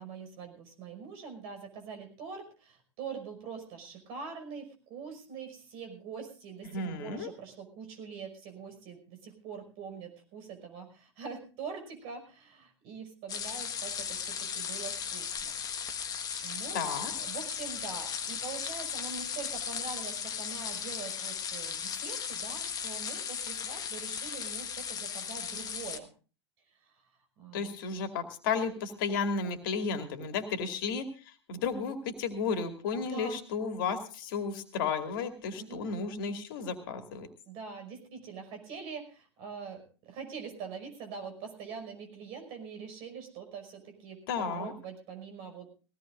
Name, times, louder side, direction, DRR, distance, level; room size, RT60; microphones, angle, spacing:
voice 1, 0.0-16.9 17.2-26.1 26.7-26.9 27.4-27.7 33.1-33.4 35.5-35.9 37.5-45.7, right 5 dB, 45° right, 4 dB, 5.7 m, -44 dB
voice 2, 6.7-7.3 16.7-17.1 27.5-37.3 44.3-44.7, left 5 dB, 55° left, 7 dB, 2.4 m, -33 dB
sound 1, 13.3-26.0, left 7 dB, 30° left, 1.4 m, -36 dB
21.5 x 17.5 x 2.5 m, 0.35 s
figure-of-eight pair, 90°, 14 cm